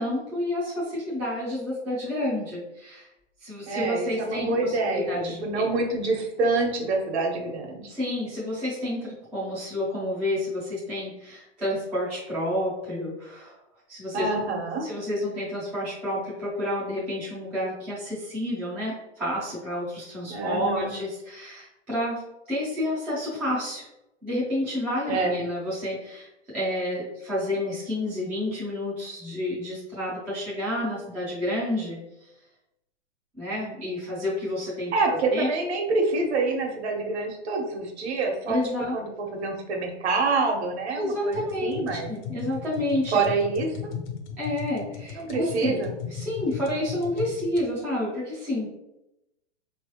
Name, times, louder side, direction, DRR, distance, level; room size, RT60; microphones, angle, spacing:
voice 1, 0.0-3.1 3.4-5.6 7.9-13.6 13.9-14.4 14.8-23.8 24.2-32.3 33.4-35.5 38.5-39.0 41.0-43.1 44.4-45.8 46.1-48.7, left 1 dB, 5° right, -10 dB, 0.3 m, -30 dB
voice 2, 3.7-7.8 14.1-14.9 20.3-20.9 25.1-25.4 34.9-38.6 38.9-42.1 43.1-43.9 45.1-45.9, right 3 dB, 65° right, 1 dB, 1.3 m, -26 dB
sound 1, 41.3-47.7, left 7 dB, 40° left, 0.6 m, -37 dB
4.3 x 3.1 x 2.9 m, 0.88 s
hypercardioid pair, 155°, 35 cm